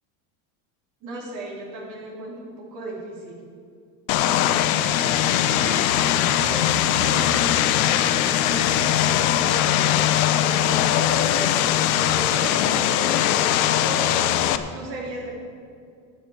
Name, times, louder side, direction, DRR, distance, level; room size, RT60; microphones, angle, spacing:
voice 1, 1.0-3.4 4.2-5.0 5.4-5.8 6.4-10.0 10.4-11.6 12.1-14.0 14.7-15.4, right 1 dB, 45° right, -2 dB, 3.4 m, -36 dB
Vehicle, 4.1-14.6, left 11 dB, 75° left, 0.8 m, -21 dB
9.3 x 8.7 x 8.4 m, 2.3 s
cardioid pair, 160°, 43 cm